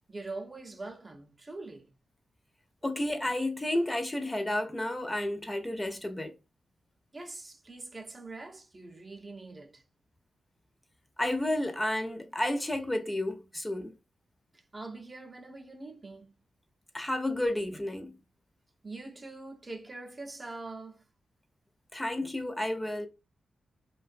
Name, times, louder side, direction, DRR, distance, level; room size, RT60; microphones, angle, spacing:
voice 1, 0.1-1.9 7.1-9.8 14.5-16.4 18.8-21.0, right 2 dB, 30° right, 0.5 m, -43 dB
voice 2, 2.8-6.3 11.2-14.0 16.9-18.2 21.9-23.1, left 1 dB, 20° left, 0.6 m, -31 dB
2.5 x 2.2 x 2.4 m
supercardioid pair, 50°, 0 cm